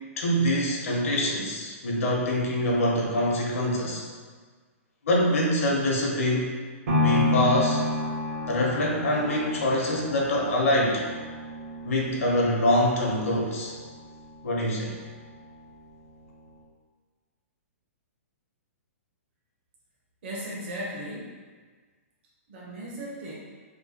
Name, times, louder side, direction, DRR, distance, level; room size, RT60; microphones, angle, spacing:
voice 1, 0.2-4.0 5.0-6.6 7.0-7.8 8.5-11.1 11.8-13.7 14.4-15.0, left 1 dB, 70° left, -2 dB, 0.9 m, -25 dB
sound 1, 6.9-15.0 15.4-15.5, left 1 dB, 75° right, 0.9 m, -30 dB
voice 2, 20.2-21.4 22.5-23.4, equal, 45° right, -6 dB, 0.7 m, -36 dB
3.0 x 2.2 x 4.2 m, 1.5 s
hypercardioid pair, 170°, 8 cm